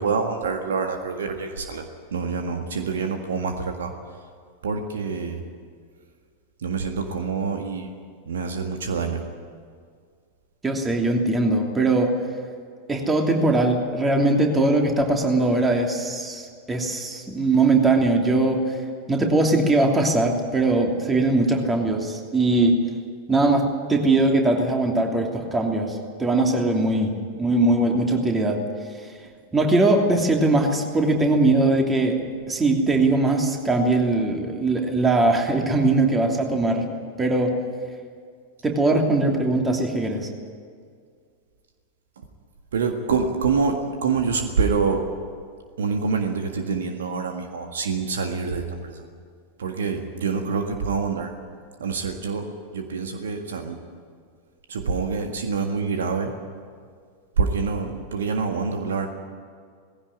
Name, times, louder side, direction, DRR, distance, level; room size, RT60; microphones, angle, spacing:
voice 1, 0.0-3.9 4.6-5.4 6.6-7.9 8.2-9.2 42.2-42.3 42.7-45.0 45.8-49.0 49.6-51.3 51.8-52.5 52.7-53.8 54.7-56.3 57.4-59.1, right 5 dB, 65° right, 5 dB, 1.7 m, -26 dB
voice 2, 10.6-12.1 12.9-18.8 19.1-22.8 23.3-28.6 29.5-32.2 32.5-36.8 37.2-37.5 38.6-40.3, right 2 dB, 15° right, 2 dB, 3.0 m, -21 dB
19.0 x 16.5 x 10.0 m, 2.1 s
figure-of-eight pair, 90°, 0 cm